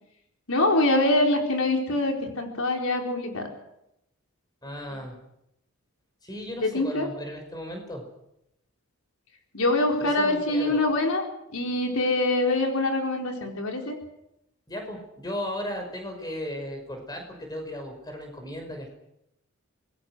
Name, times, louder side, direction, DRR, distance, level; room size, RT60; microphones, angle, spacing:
voice 1, 0.5-3.5 6.6-7.1 9.5-11.2 11.5-14.0, left 2 dB, 80° left, 2 dB, 4.5 m, -24 dB
voice 2, 4.6-5.2 6.2-8.0 10.0-10.8 14.7-18.9, left 1 dB, 20° left, 4 dB, 5.9 m, -36 dB
26.0 x 21.0 x 6.4 m, 0.81 s
head